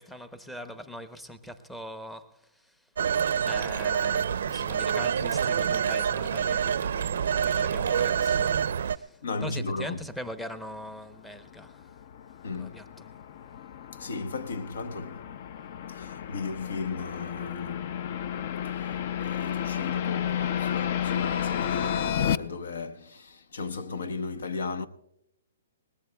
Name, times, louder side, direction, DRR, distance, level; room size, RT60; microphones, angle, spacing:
voice 1, 0.0-2.8 3.4-11.9 12.6-12.8, equal, 5° left, 0.7 m, -41 dB
Telephone, 3.0-9.0, right 7 dB, 70° right, 0.5 m, -27 dB
voice 2, 9.2-10.0 12.4-12.8 13.9-15.3 15.9-18.3 18.6-24.9, left 4 dB, 75° left, 1.0 m, -36 dB
sound 1, 10.9-22.4, left 9 dB, 50° left, 0.4 m, -32 dB
22.0 x 19.0 x 2.3 m
hypercardioid pair, 150°, 0 cm